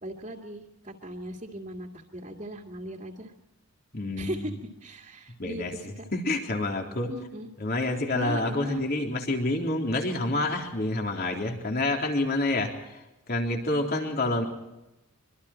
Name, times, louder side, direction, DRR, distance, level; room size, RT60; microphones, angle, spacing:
voice 1, 0.0-3.3 4.2-4.5 4.8-6.1 7.1-7.5 8.1-8.8, right 1 dB, 35° right, -1 dB, 2.3 m, -38 dB
voice 2, 3.9-4.5 5.4-7.1 7.6-13.0 13.3-14.5, left 2 dB, 45° left, 2 dB, 3.7 m, -28 dB
25.0 x 24.5 x 4.4 m, 0.97 s
head